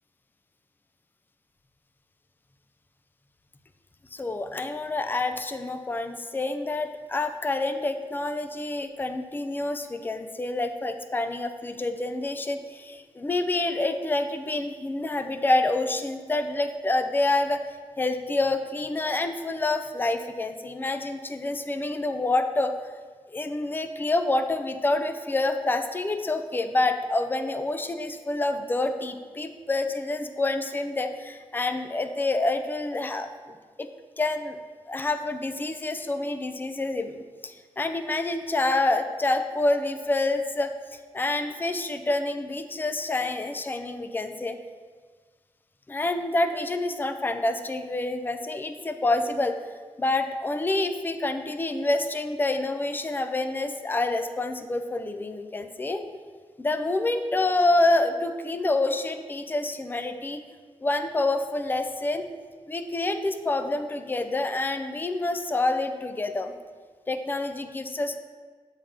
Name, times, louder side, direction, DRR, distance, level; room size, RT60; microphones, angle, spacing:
voice 1, 4.1-17.6 18.0-22.7 23.3-33.3 33.8-33.9 34.2-34.6 34.9-37.2 37.4-40.7 41.1-44.6 45.9-49.6 50.0-56.0 56.6-60.4 60.8-62.3 62.7-66.5 67.1-68.2, left 2 dB, 15° left, 8 dB, 0.5 m, -27 dB
7.3 x 3.6 x 5.3 m, 1.5 s
cardioid pair, 75°, 11 cm